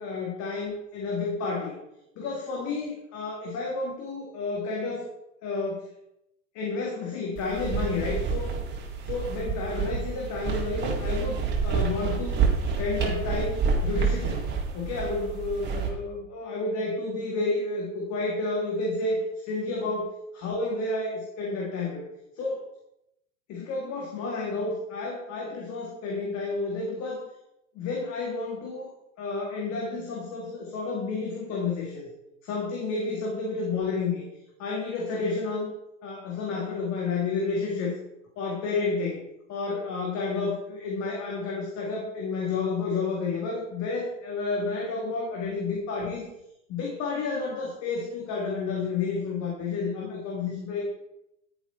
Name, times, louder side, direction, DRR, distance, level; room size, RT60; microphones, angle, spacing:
voice 1, 0.0-1.8 2.2-5.1 5.4-5.9 6.5-8.6 9.1-12.4 12.8-14.5 14.7-22.1 22.4-22.7 23.5-27.2 27.8-28.9 29.2-32.1 32.4-34.2 34.6-35.7 36.0-37.9 38.4-39.2 39.5-46.3 46.7-50.9, left 3 dB, 45° left, -2 dB, 3.9 m, -30 dB
sound 1, 7.4-15.9, right 5 dB, 25° right, 3.9 m, -28 dB
15.0 x 8.7 x 4.7 m, 0.82 s
hypercardioid pair, 110°, 40 cm